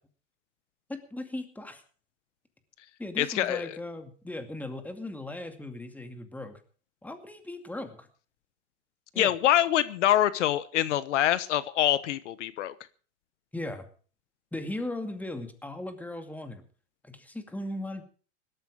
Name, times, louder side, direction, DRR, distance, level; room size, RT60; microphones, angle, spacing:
voice 1, 0.9-1.8 3.0-6.6 7.0-8.1 9.1-9.3 13.5-13.8 14.5-16.6 17.0-18.0, left 1 dB, 5° left, 7 dB, 2.3 m, -37 dB
voice 2, 3.2-3.7 9.2-12.7, left 12 dB, 85° left, 16 dB, 1.1 m, -25 dB
18.0 x 13.0 x 4.9 m, 0.41 s
supercardioid pair, 125°, 35 cm